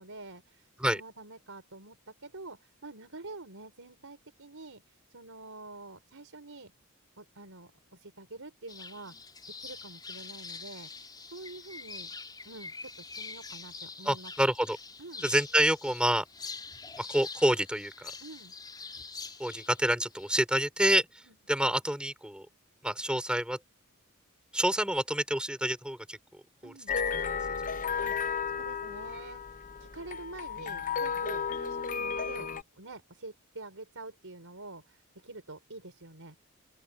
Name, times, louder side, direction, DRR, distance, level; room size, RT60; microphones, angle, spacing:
voice 1, 0.0-6.7 7.2-9.1 9.6-12.1 12.4-14.3 15.0-15.3 18.2-18.5 21.2-21.4 26.6-27.0 28.0-36.4, right 2 dB, 70° right, 5.3 m, -47 dB
sound 1, 8.7-20.4, left 4 dB, 20° left, 3.5 m, -45 dB
voice 2, 14.1-14.8 15.2-16.2 17.0-18.1 19.4-21.1 21.5-22.5 22.8-23.6 24.5-26.2 26.6-26.7, right 1 dB, 5° right, 5.3 m, -27 dB
sound 2, 26.9-32.6, left 6 dB, 40° left, 0.8 m, -33 dB
open air
head